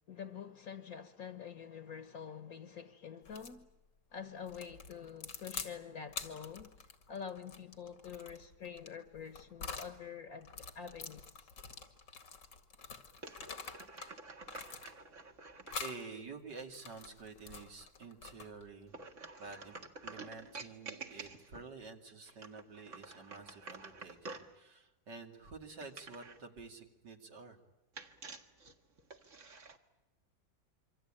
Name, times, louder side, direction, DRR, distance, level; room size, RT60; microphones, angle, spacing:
voice 1, 0.1-3.7 4.1-6.7 7.1-11.5, left 7 dB, 55° left, 1.6 m, -47 dB
sound 1, 3.3-3.6 4.5-5.8 6.1-10.0 10.4-14.1 14.4-15.2 15.7-16.0 16.6-18.7, left 5 dB, 90° left, 2.8 m, -46 dB
sound 2, 13.2-15.8 18.9-21.7 22.3-24.6 25.8-26.5 28.0-29.8, right 3 dB, 45° right, 2.0 m, -49 dB
voice 2, 15.8-18.9 19.4-19.8 20.0-27.6, right 4 dB, 75° right, 3.1 m, -50 dB
27.0 x 25.0 x 8.8 m
omnidirectional pair, 1.9 m